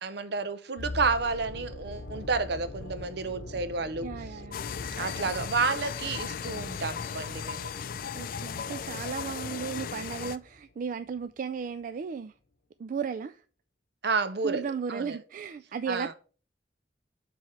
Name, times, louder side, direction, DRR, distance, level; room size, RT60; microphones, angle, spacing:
voice 1, 0.0-4.1 5.0-7.7 14.0-15.2 15.9-16.1, right 4 dB, 65° right, 0.7 m, -30 dB
sound 1, 0.8-10.8 11.0-11.2, left 2 dB, 85° left, 0.8 m, -44 dB
voice 2, 4.0-4.6 8.1-12.3 12.8-13.4 14.4-16.1, right 6 dB, 45° right, 0.3 m, -35 dB
sound 2, 4.5-10.4, left 7 dB, 55° left, 0.4 m, -36 dB
7.5 x 3.5 x 5.7 m
head